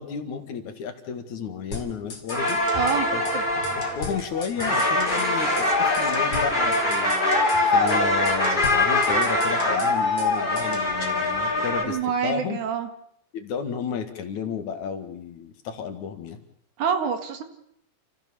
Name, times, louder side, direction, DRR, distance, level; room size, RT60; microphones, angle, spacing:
voice 1, 0.0-2.6 3.1-3.2 3.9-7.1 7.7-12.6 13.3-16.4, left 7 dB, 70° left, 6 dB, 3.2 m, -32 dB
sound 1, 1.7-3.0 3.3-3.4 3.6-5.3 5.6-5.7 5.9-7.6 7.9-8.0 8.3-10.3 10.6-10.9, left 3 dB, 40° left, 3.1 m, -38 dB
sound 2, 2.3-11.8, left 2 dB, 15° left, 4.1 m, -23 dB
voice 2, 2.7-3.1 3.3-3.4 11.6-12.9 16.8-17.4, right 7 dB, 75° right, 7 dB, 3.2 m, -26 dB
28.5 x 15.0 x 7.0 m, 0.71 s
omnidirectional pair, 3.6 m